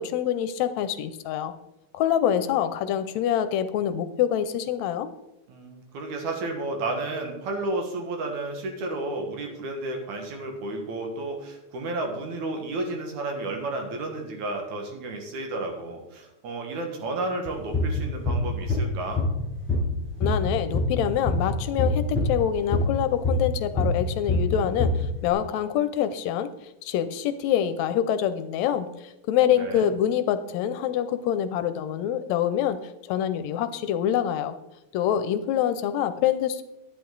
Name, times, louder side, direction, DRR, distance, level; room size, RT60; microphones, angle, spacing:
voice 1, 0.0-1.5 1.9-5.1 20.2-26.5 26.8-32.8 33.1-34.6 34.9-36.6, left 10 dB, 80° left, 12 dB, 1.8 m, -25 dB
voice 2, 5.5-19.2 29.6-29.9, right 2 dB, 80° right, 3 dB, 2.9 m, -32 dB
sound 1, 17.5-19.4 19.7-23.5 23.8-25.1, left 3 dB, 5° left, 2.8 m, -25 dB
10.5 x 10.0 x 3.9 m, 0.95 s
omnidirectional pair, 3.4 m